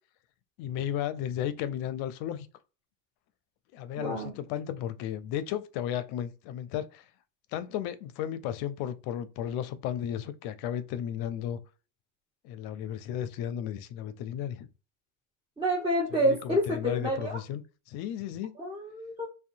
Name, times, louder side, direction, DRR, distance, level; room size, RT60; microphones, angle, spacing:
voice 1, 0.6-2.5 3.7-7.0 7.5-11.6 12.4-14.7 16.2-17.6 17.9-18.5, left 10 dB, 60° left, 0.5 m, -34 dB
voice 2, 4.0-4.3 15.6-17.4 18.6-19.3, equal, 10° right, 0.8 m, -28 dB
2.6 x 2.2 x 2.5 m
hypercardioid pair, 90°, 45 cm